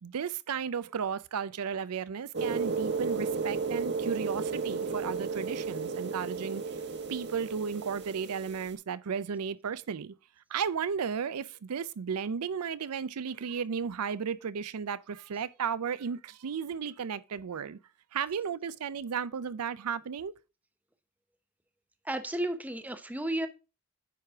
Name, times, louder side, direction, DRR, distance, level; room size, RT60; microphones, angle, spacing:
voice 1, 0.0-6.6 7.1-10.1 10.5-17.8 18.1-20.3, right 6 dB, 90° right, 0.5 m, -34 dB
sound 1, 2.3-8.7, right 4 dB, 50° right, 1.1 m, -33 dB
voice 2, 22.0-23.5, right 1 dB, 5° right, 0.6 m, -33 dB
9.2 x 4.9 x 3.5 m
head